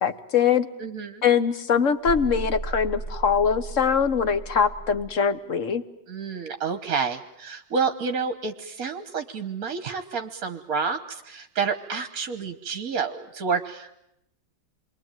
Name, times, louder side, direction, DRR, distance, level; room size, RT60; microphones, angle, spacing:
voice 1, 0.0-0.7 1.2-5.8, left 7 dB, 45° left, 11 dB, 1.5 m, -22 dB
voice 2, 0.8-1.2 6.1-13.9, right 5 dB, 55° right, 8 dB, 1.6 m, -29 dB
sound 1, 2.0-5.1, right 2 dB, 75° left, 7.0 m, -35 dB
28.0 x 23.0 x 9.1 m, 0.83 s
omnidirectional pair, 1.9 m